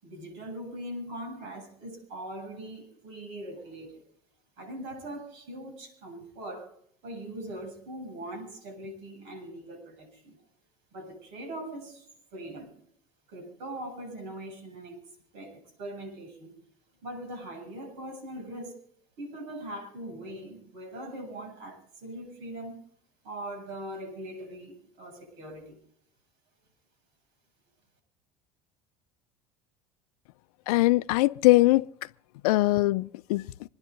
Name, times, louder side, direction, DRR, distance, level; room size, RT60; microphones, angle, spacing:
voice 1, 0.0-4.0 4.6-6.7 7.0-10.4 10.9-12.0 12.3-12.7 13.3-15.0 15.3-16.6 17.0-18.8 19.2-22.8 23.2-25.8, right 1 dB, 65° right, 7.8 m, -41 dB
voice 2, 30.7-31.8 32.4-33.4, left 19 dB, 75° left, 0.6 m, -21 dB
26.5 x 10.5 x 3.9 m
hypercardioid pair, 75°, 19 cm